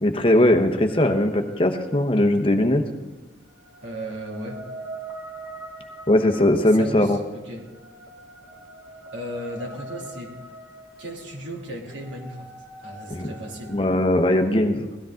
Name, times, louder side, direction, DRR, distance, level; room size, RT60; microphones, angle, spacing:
voice 1, 0.0-2.8 6.1-7.2 13.1-13.3 13.7-14.8, left 1 dB, 30° left, 5 dB, 0.9 m, -19 dB
sound 1, 0.9-2.5 3.4-14.5, right 2 dB, 10° right, 2.5 m, -43 dB
voice 2, 3.8-4.6 6.7-7.7 9.1-10.4 11.0-12.5 12.8-13.8, right 1 dB, 90° right, -2 dB, 2.8 m, -35 dB
17.5 x 13.0 x 3.8 m, 1.1 s
head